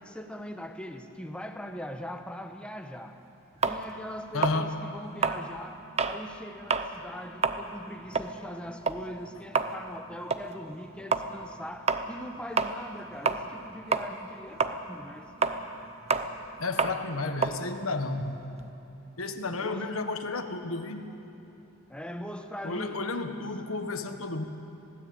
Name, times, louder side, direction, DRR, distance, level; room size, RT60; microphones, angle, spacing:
voice 1, 0.0-3.2 3.7-15.3 19.6-19.9 21.9-23.0, equal, 5° left, 6 dB, 1.0 m, -41 dB
sound 1, 3.6-6.2 6.6-6.9 7.3-13.7 13.9-18.7, right 4 dB, 30° right, 0.7 m, -29 dB
voice 2, 4.3-4.7 16.6-18.4 19.2-21.1 22.6-24.5, left 3 dB, 85° left, 7 dB, 1.5 m, -32 dB
19.5 x 17.0 x 8.7 m, 3.0 s
head